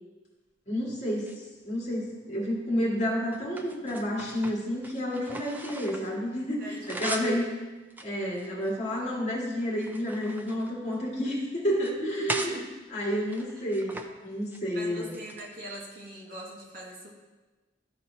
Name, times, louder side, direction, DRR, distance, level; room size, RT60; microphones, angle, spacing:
voice 1, 0.7-7.5 8.0-12.6 12.9-15.2, equal, 40° left, -5 dB, 1.9 m, -30 dB
sound 1, 1.1-2.1 2.7-6.2 6.5-7.4 7.9-9.2 9.6-11.3 11.7-12.6 13.2-14.1 14.3-14.6 15.0-16.0, right 1 dB, 10° right, 0.4 m, -40 dB
voice 2, 6.6-7.3 12.0-12.7 13.5-13.7 14.7-17.1, right 1 dB, 50° right, -2 dB, 1.2 m, -41 dB
12.0 x 4.2 x 2.7 m, 1.2 s
head